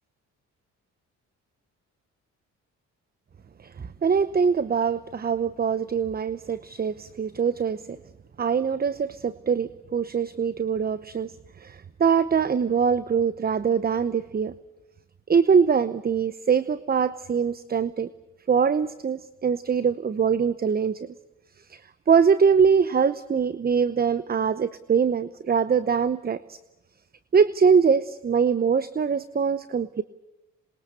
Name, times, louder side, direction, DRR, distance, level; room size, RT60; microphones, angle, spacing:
voice 1, 4.0-7.8 8.4-11.3 11.6-14.5 15.3-18.1 18.5-21.0 21.7-21.8 22.1-26.6 27.3-30.0, right 6 dB, 30° right, 16 dB, 0.9 m, -23 dB
27.0 x 22.0 x 8.1 m, 1.0 s
cardioid pair, 90°, 30 cm